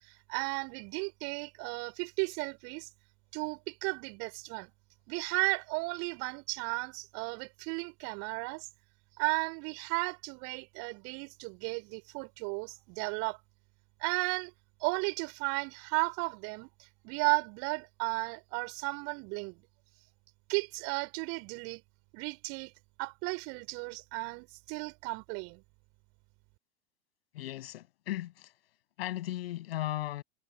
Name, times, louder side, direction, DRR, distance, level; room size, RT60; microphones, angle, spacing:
voice 1, 0.1-2.9 3.3-4.7 5.1-8.7 9.2-13.4 14.0-14.5 14.8-16.7 17.0-19.6 20.5-21.8 22.1-22.7 23.0-25.6, right 33 dB, 45° right, 3.5 m, -34 dB
voice 2, 27.3-28.5 29.0-30.2, left 14 dB, 60° left, 7.5 m, -36 dB
figure-of-eight pair, 90°, 34 cm